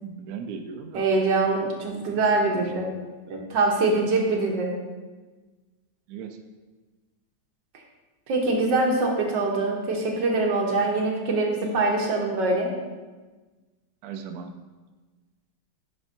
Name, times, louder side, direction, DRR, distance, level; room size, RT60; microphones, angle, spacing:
voice 1, 0.0-1.1 1.8-2.7 3.3-3.4 6.1-6.4 14.0-14.5, right 6 dB, 70° right, 6 dB, 0.9 m, -38 dB
voice 2, 0.9-2.9 3.3-4.7 8.3-12.7, right 3 dB, 90° right, 0 dB, 1.7 m, -24 dB
11.0 x 4.4 x 2.6 m, 1.3 s
omnidirectional pair, 1.9 m